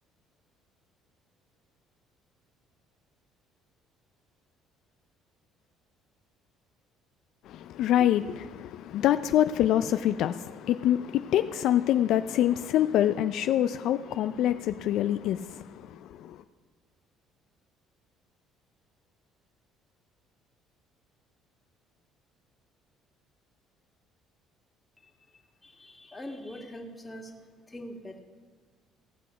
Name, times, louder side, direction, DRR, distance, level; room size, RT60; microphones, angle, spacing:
voice 1, 7.5-16.4, left 11 dB, 70° left, 0.3 m, -26 dB
voice 2, 25.0-27.3 27.7-28.2, left 1 dB, 15° left, 1.8 m, -43 dB
16.5 x 6.3 x 5.6 m
supercardioid pair, 85°, 0 cm